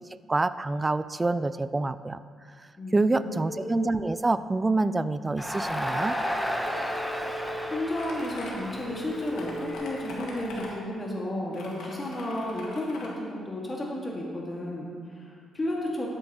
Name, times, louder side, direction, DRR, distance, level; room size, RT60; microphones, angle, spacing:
voice 1, 0.3-2.2 2.6-6.2, right 2 dB, 20° right, 14 dB, 0.3 m, -27 dB
voice 2, 2.8-3.3 7.1-7.4 7.7-16.1, left 1 dB, 25° left, -3 dB, 1.8 m, -33 dB
Telephone, 3.2-3.7 6.6-7.7 8.9-9.7, equal, 75° right, 2.3 m, -39 dB
Crowd, 5.4-10.6, equal, 5° left, 0.9 m, -33 dB
sound 1, 8.0-8.5 9.1-10.7 11.5-13.1, left 3 dB, 85° left, 1.8 m, -43 dB
12.5 x 9.7 x 3.0 m, 2.1 s
cardioid pair, 90°, 0 cm